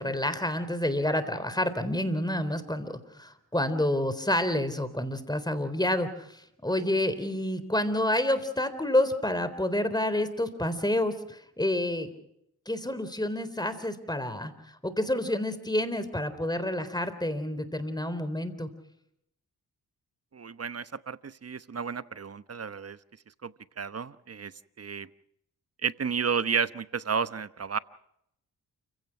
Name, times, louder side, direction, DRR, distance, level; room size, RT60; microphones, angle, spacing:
voice 1, 0.0-12.1 12.7-14.5 14.8-18.7, left 1 dB, 10° left, 12 dB, 3.8 m, -29 dB
voice 2, 20.3-23.0 23.4-24.5 24.8-25.1 25.8-27.8, right 6 dB, 40° right, 14 dB, 1.0 m, -32 dB
29.5 x 16.5 x 6.0 m, 0.76 s
supercardioid pair, 50°, 37 cm